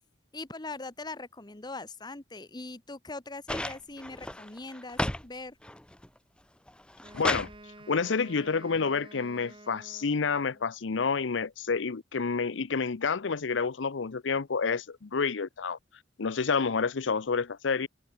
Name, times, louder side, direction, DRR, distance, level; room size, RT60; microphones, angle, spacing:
voice 1, 0.3-5.6, left 3 dB, 25° left, 1.2 m, -41 dB
sound 1, 3.5-5.3 5.6-6.2 6.7-7.5 8.7-8.8, left 1 dB, 5° left, 0.6 m, -33 dB
Wind instrument woodwind instrument, 7.0-10.7, right 2 dB, 30° right, 3.0 m, -51 dB
voice 2, 7.1-7.5 7.9-15.8 16.2-17.9, left 5 dB, 90° left, 0.7 m, -29 dB
open air
head